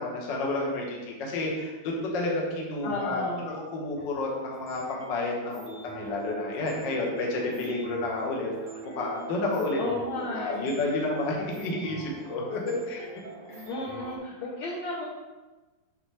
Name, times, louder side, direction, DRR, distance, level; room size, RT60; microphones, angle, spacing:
voice 1, 0.0-9.8 10.2-13.1 13.5-13.7, left 2 dB, 80° left, -2 dB, 1.0 m, -30 dB
voice 2, 2.8-3.5 9.8-10.7 13.7-15.0, left 2 dB, 65° left, -6 dB, 1.9 m, -33 dB
sound 1, 4.0-14.2, right 4 dB, 90° right, 1.2 m, -44 dB
8.0 x 5.4 x 3.4 m, 1.2 s
omnidirectional pair, 4.2 m